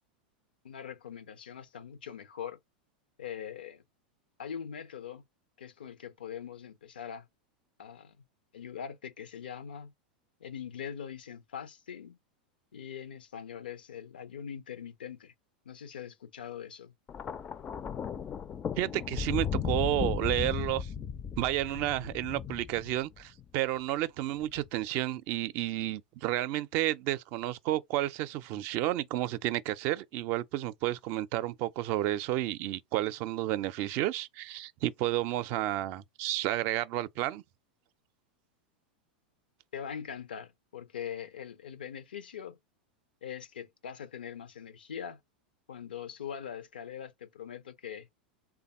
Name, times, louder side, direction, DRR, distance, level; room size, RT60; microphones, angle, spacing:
voice 1, 0.6-2.6 3.2-3.8 4.4-5.2 5.6-7.3 7.8-8.2 8.5-9.9 10.4-12.2 12.7-15.3 15.7-16.9 39.7-42.6 43.2-45.2 45.7-48.1, left 8 dB, 85° left, 0.5 m, -42 dB
Thunder, 17.1-23.4 24.4-24.7, left 7 dB, 25° left, 0.3 m, -35 dB
voice 2, 18.8-20.9 21.4-37.4, right 15 dB, 50° right, 0.4 m, -31 dB
3.4 x 2.2 x 4.1 m
hypercardioid pair, 100°, 5 cm